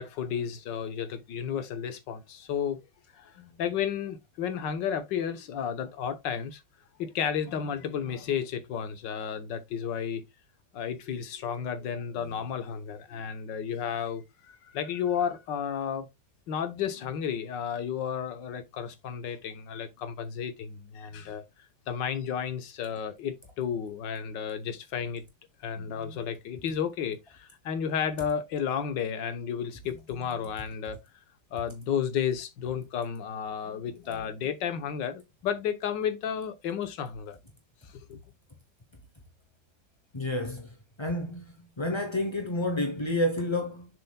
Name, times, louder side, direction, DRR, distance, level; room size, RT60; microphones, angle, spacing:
voice 1, 0.0-2.8 3.1-6.6 7.0-10.3 10.7-16.1 16.5-21.4 21.9-25.2 25.6-31.0 31.5-37.4 37.8-38.2, left 8 dB, 75° left, 1.7 m, -32 dB
voice 2, 40.1-40.7 41.0-41.4 41.8-43.9, left 1 dB, 30° left, 0.5 m, -29 dB
7.1 x 7.0 x 2.3 m
omnidirectional pair, 2.0 m